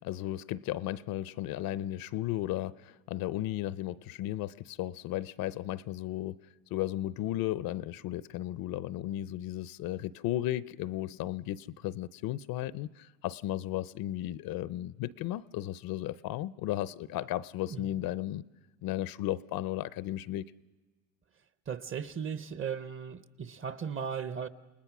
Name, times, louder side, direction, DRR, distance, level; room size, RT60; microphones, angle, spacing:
voice 1, 0.0-6.4 6.7-18.4 18.8-20.4, left 14 dB, 55° left, 0.6 m, -35 dB
voice 2, 21.7-24.5, right 7 dB, 30° right, 0.9 m, -37 dB
29.0 x 19.0 x 6.0 m
supercardioid pair, 115°, 44 cm